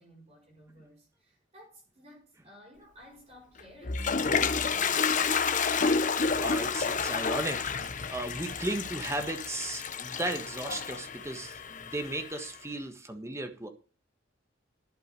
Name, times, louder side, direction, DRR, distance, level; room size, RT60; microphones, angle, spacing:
voice 1, 0.0-5.4, equal, 35° right, 5.8 m, -55 dB
Toilet flush, 3.6-12.5, left 5 dB, 40° left, 0.9 m, -30 dB
voice 2, 6.4-7.6 7.9-13.7, right 2 dB, 15° right, 1.4 m, -35 dB
11.5 x 8.1 x 6.8 m
head